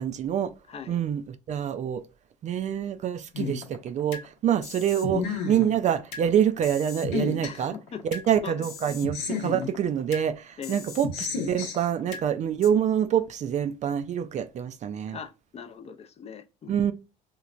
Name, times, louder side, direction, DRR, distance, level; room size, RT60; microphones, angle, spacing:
voice 1, 0.0-0.5 0.9-2.0 2.4-7.7 8.0-15.2 16.7-16.9, right 9 dB, 40° right, 0.4 m, -26 dB
voice 2, 0.7-1.0 7.4-8.0 8.4-8.9 10.6-10.8 15.0-16.9, left 7 dB, 35° left, 0.4 m, -41 dB
sound 1, 3.3-4.3 4.6-6.3 6.6-8.3 8.6-10.3 10.6-12.3 12.6-12.7, left 5 dB, 80° left, 0.8 m, -33 dB
3.0 x 2.1 x 2.4 m
supercardioid pair, 80°, 19 cm